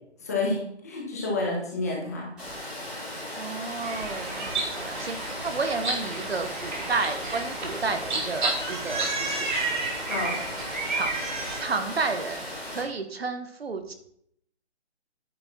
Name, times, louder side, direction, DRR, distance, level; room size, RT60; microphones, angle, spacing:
voice 1, 0.2-2.3 10.1-10.4, left 2 dB, 15° left, -3 dB, 1.3 m, -29 dB
Water, 2.4-12.8, left 1 dB, ahead, 2.0 m, -37 dB
voice 2, 3.4-9.5 10.9-12.5 12.7-13.9, right 4 dB, 60° right, 8 dB, 1.2 m, -31 dB
sound 1, 3.8-11.6, right 3 dB, 45° right, 2.5 m, -31 dB
9.6 x 6.8 x 4.1 m, 0.71 s
hypercardioid pair, 175°, 34 cm